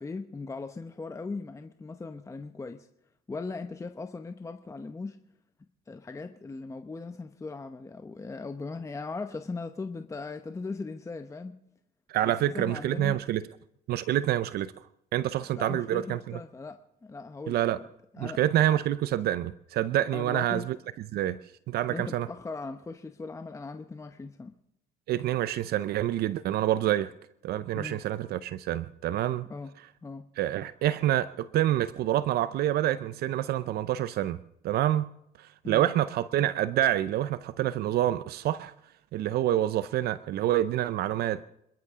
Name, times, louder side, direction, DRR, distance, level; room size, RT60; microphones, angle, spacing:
voice 1, 0.0-2.9 3.3-5.2 5.9-11.5 12.2-13.2 15.6-16.8 17.0-17.9 18.1-18.4 20.1-20.6 21.9-24.6 27.8-28.0 29.5-29.7 30.0-30.3 35.6-35.9, left 3 dB, 15° left, 0.9 m, -38 dB
voice 2, 12.1-13.4 13.9-14.8 15.1-16.4 17.5-17.8 18.2-20.8 21.1-21.4 21.7-22.3 25.1-27.1 27.4-29.5 30.4-34.4 34.6-35.1 35.4-38.7 39.1-41.4, right 12 dB, 70° right, 0.6 m, -27 dB
27.5 x 13.0 x 3.7 m
cardioid pair, 110°, 17 cm